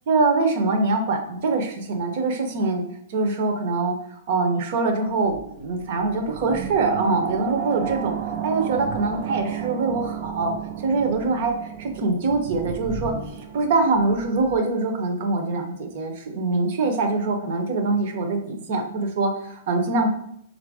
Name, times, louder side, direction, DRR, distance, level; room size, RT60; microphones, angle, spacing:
voice 1, 0.1-2.8 3.1-4.0 4.3-8.2 8.4-10.5 10.8-11.5 11.8-13.1 13.5-20.1, right 3 dB, 40° right, 4 dB, 0.7 m, -23 dB
sound 1, 5.1-14.7, right 8 dB, 20° right, 0.3 m, -33 dB
3.9 x 2.6 x 4.7 m, 0.70 s
hypercardioid pair, 175°, 0 cm